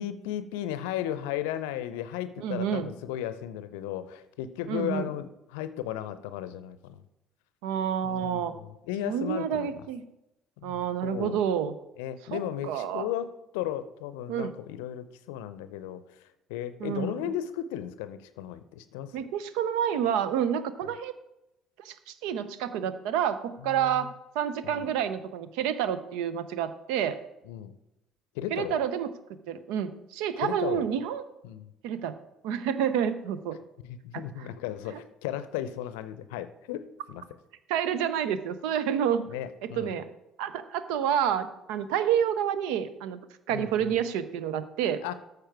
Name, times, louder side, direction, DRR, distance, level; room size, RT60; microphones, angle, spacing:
voice 1, 0.0-7.0 8.0-9.9 10.6-11.4 12.0-13.3 13.5-19.2 23.6-24.1 24.6-24.9 27.4-27.7 28.3-28.8 30.4-30.9 31.4-31.7 33.8-37.2 39.3-40.0 43.5-44.0 45.0-45.1, left 11 dB, 70° left, 13 dB, 0.6 m, -35 dB
voice 2, 2.4-2.9 4.7-5.1 7.6-8.5 9.1-10.0 10.6-11.7 12.3-13.1 14.3-14.5 16.8-17.2 19.1-21.1 21.8-27.2 28.5-29.1 29.5-31.2 31.8-32.1 32.4-33.6 37.7-39.3 39.6-40.1 40.4-43.2 43.5-45.0, right 9 dB, 65° right, 13 dB, 0.6 m, -29 dB
13.5 x 4.8 x 4.6 m, 0.90 s
figure-of-eight pair, 55°, 0 cm